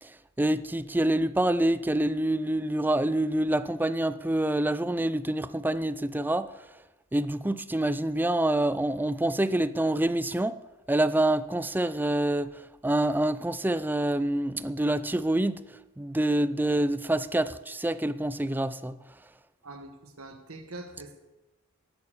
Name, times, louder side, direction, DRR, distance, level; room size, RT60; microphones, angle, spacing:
voice 1, 0.0-6.6 7.1-10.6 10.9-19.0, right 1 dB, 10° right, 0.4 m, -27 dB
voice 2, 19.6-21.2, right 2 dB, 75° right, 1.4 m, -44 dB
12.0 x 10.5 x 7.1 m
head